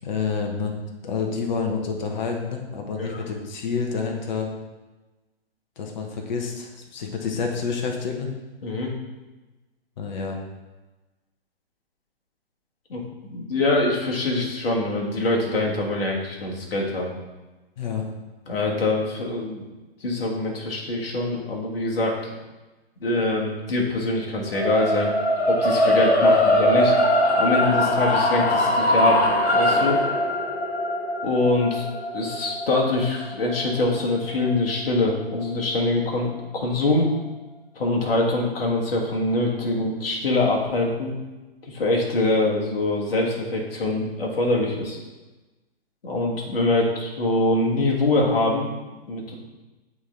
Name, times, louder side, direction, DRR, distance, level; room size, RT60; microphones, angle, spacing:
voice 1, 0.0-0.7 1.0-4.5 5.8-8.3 10.0-10.4 17.8-18.1, left 5 dB, 45° left, 2 dB, 1.0 m, -28 dB
voice 2, 13.3-17.1 18.5-19.7 20.0-22.3 23.0-25.1 25.5-27.0 27.4-30.0 31.2-31.8 32.1-37.1 37.7-41.1 41.7-45.0 46.0-48.7 49.1-49.4, left 2 dB, 60° left, -1 dB, 1.6 m, -24 dB
sound 1, 24.5-34.7, left 1 dB, 85° left, 0.9 m, -21 dB
8.0 x 3.3 x 3.8 m, 1.1 s
figure-of-eight pair, 130°, 32 cm